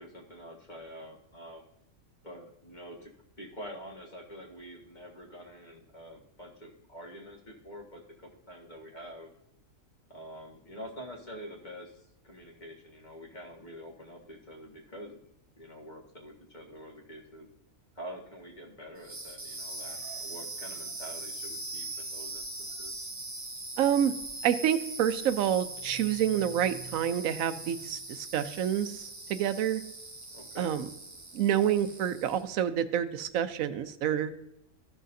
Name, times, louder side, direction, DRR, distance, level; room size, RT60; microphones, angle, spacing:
voice 1, 0.0-1.7 2.2-3.1 3.4-9.3 10.1-15.2 15.6-17.5 17.9-22.9 30.3-30.7, equal, 35° left, 0 dB, 1.6 m, -46 dB
sound 1, 19.0-32.5, right 2 dB, 15° right, 0.6 m, -41 dB
voice 2, 23.8-24.1 24.4-29.8 30.6-30.9 31.3-34.3, right 10 dB, 80° right, 11 dB, 1.0 m, -28 dB
13.5 x 6.2 x 2.7 m, 0.83 s
omnidirectional pair, 1.4 m